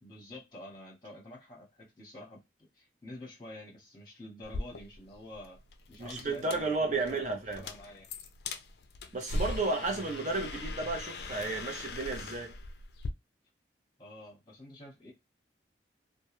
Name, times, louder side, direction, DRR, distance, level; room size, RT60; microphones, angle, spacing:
voice 1, 0.0-2.4 2.7-5.6 5.9-8.0 14.0-15.1, left 1 dB, 25° left, 0.9 m, -48 dB
sound 1, 4.4-13.1, left 2 dB, 55° left, 0.4 m, -40 dB
voice 2, 6.0-7.6 9.1-12.5, right 3 dB, 40° right, 0.7 m, -33 dB
2.3 x 2.2 x 2.9 m
head